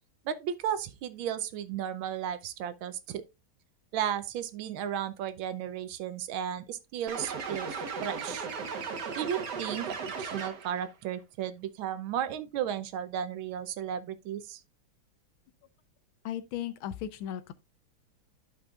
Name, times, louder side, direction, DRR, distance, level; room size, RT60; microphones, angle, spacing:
voice 1, 0.2-3.2 3.9-8.5 9.2-14.6, right 9 dB, 85° right, 1.5 m, -34 dB
sound 1, 7.1-10.9, right 5 dB, 60° right, 1.7 m, -36 dB
voice 2, 16.2-17.5, left 10 dB, 85° left, 1.5 m, -36 dB
11.5 x 5.3 x 2.4 m
omnidirectional pair, 2.2 m